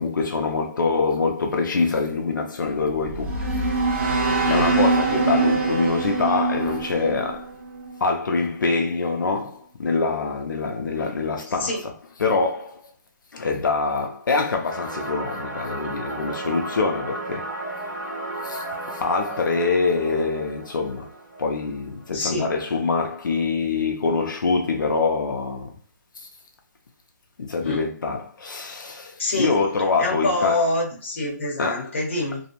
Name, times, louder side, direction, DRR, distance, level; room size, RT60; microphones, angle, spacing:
voice 1, 0.0-3.9 4.5-7.5 8.0-12.8 13.3-17.5 18.4-21.1 21.4-25.7 26.2-26.3 27.4-30.7 31.6-32.0, left 4 dB, 85° left, 0.4 m, -25 dB
sound 1, 2.8-8.0, right 3 dB, 40° right, 0.6 m, -23 dB
voice 2, 4.4-4.8 11.6-11.8 22.1-22.5 27.6-27.8 29.2-29.5 30.0-32.4, left 2 dB, 40° left, 0.7 m, -25 dB
sound 2, 14.7-22.2, right 2 dB, 60° right, 1.2 m, -34 dB
2.6 x 2.0 x 2.8 m
hypercardioid pair, 180°, 10 cm